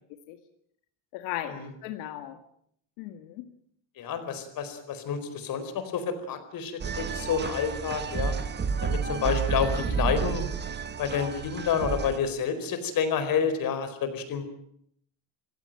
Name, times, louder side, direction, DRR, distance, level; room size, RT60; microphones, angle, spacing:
voice 1, 1.1-2.4 3.0-3.5, left 13 dB, 90° left, 8 dB, 2.0 m, -37 dB
voice 2, 4.0-8.4 8.8-10.5 11.0-14.4, left 7 dB, 45° left, 9 dB, 4.7 m, -29 dB
sound 1, 6.8-12.2, right 5 dB, 20° right, 1.5 m, -30 dB
26.0 x 16.5 x 9.0 m, 0.70 s
cardioid pair, 145°, 47 cm